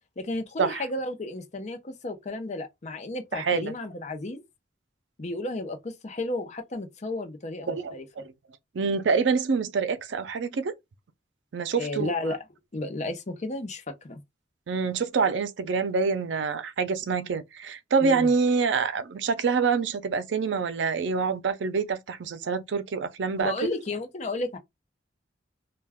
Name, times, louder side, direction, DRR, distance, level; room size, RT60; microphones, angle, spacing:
voice 1, 0.2-4.4 5.2-8.0 11.7-12.4 12.7-14.2 18.0-18.3 23.4-24.6, left 2 dB, 40° left, 0.6 m, -33 dB
voice 2, 3.3-3.7 7.7-8.2 8.7-10.7 11.5-12.1 14.7-23.5, right 5 dB, 90° right, 0.4 m, -26 dB
2.3 x 2.2 x 3.4 m
head